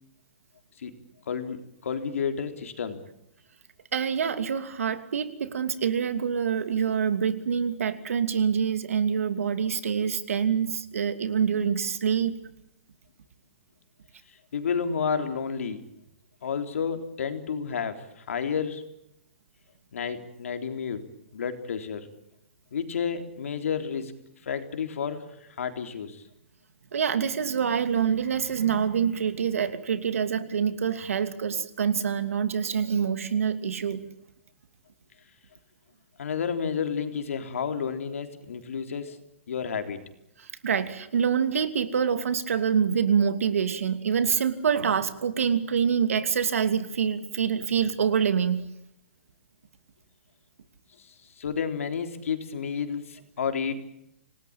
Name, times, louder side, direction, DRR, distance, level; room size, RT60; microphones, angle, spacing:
voice 1, 1.3-3.0 14.5-15.8 16.4-18.8 19.9-21.1 21.3-22.1 22.7-24.1 24.4-26.2 36.2-39.2 39.5-40.0 51.0-53.7, left 6 dB, 80° left, 7 dB, 3.8 m, -31 dB
voice 2, 3.9-12.3 26.9-34.1 40.6-48.6, right 7 dB, 85° right, 10 dB, 2.9 m, -26 dB
27.5 x 19.0 x 8.9 m, 0.80 s
hypercardioid pair, 165°, 7 cm